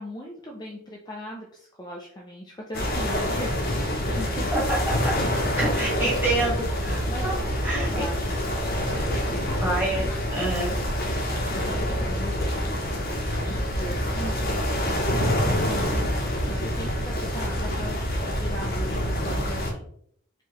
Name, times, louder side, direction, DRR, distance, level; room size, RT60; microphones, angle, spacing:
voice 1, 0.0-4.6 5.2-6.4 7.1-7.4 7.7-8.3 8.9-10.1 10.4-10.6 11.3-19.9, equal, 20° left, -1 dB, 0.5 m, -39 dB
sound 1, 2.7-19.7, equal, 45° left, 0.8 m, -26 dB
voice 2, 4.1-5.2 5.6-7.3 7.6-7.9 9.6-10.1 10.3-10.8, right 2 dB, 10° right, -6 dB, 1.7 m, -27 dB
4.6 x 3.0 x 3.0 m, 0.65 s
head